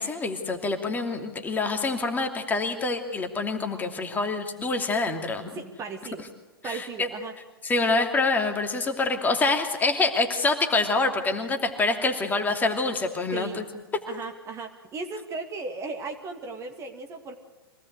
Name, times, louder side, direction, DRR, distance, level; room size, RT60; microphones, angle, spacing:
voice 1, 0.0-5.5 6.6-7.1 7.6-13.6, left 3 dB, 15° left, 4 dB, 2.9 m, -26 dB
voice 2, 5.5-6.3 6.6-7.3 13.3-13.6 14.1-17.4, right 4 dB, 20° right, 5 dB, 2.4 m, -36 dB
25.5 x 18.0 x 8.3 m, 1.1 s
figure-of-eight pair, 110°, 13 cm